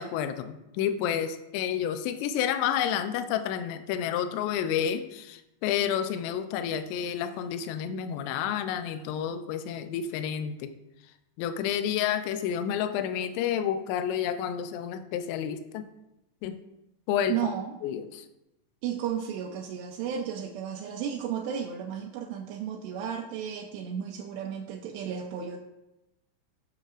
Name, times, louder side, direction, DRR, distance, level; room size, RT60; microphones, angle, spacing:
voice 1, 0.0-10.7 11.4-15.9 16.4-16.6 17.1-17.5 17.8-18.3, left 9 dB, 80° left, 9 dB, 2.6 m, -30 dB
voice 2, 17.3-17.8 18.8-25.6, right 8 dB, 80° right, 0 dB, 2.6 m, -33 dB
14.5 x 6.5 x 2.5 m, 0.92 s
omnidirectional pair, 5.3 m